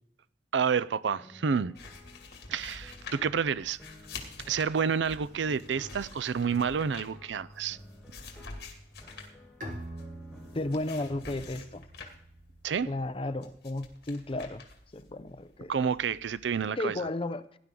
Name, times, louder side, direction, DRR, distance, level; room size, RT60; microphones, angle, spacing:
voice 1, 0.5-1.7 2.5-3.8 4.5-7.8 12.6-12.9 15.7-17.0, right 6 dB, 85° right, 0.5 m, -29 dB
sound 1, 1.2-11.6, left 1 dB, 5° left, 1.6 m, -52 dB
sound 2, 1.7-16.7, left 4 dB, 60° left, 2.3 m, -48 dB
Bowed string instrument, 9.6-13.1, right 1 dB, 50° right, 2.9 m, -45 dB
voice 2, 10.5-11.9 12.9-14.6 14.9-15.7 16.8-17.5, left 2 dB, 30° left, 0.7 m, -33 dB
17.5 x 11.0 x 3.8 m
head